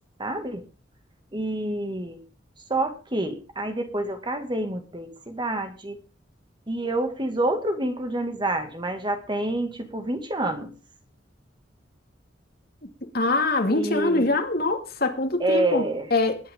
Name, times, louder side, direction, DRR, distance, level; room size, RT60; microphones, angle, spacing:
voice 1, 0.2-0.6 1.3-2.2 2.7-6.0 6.7-10.7 13.7-14.3 15.4-16.1, right 1 dB, 25° right, 2.4 m, -27 dB
voice 2, 13.1-15.8 16.1-16.4, left 2 dB, 55° left, 2.6 m, -23 dB
21.0 x 10.0 x 3.9 m
head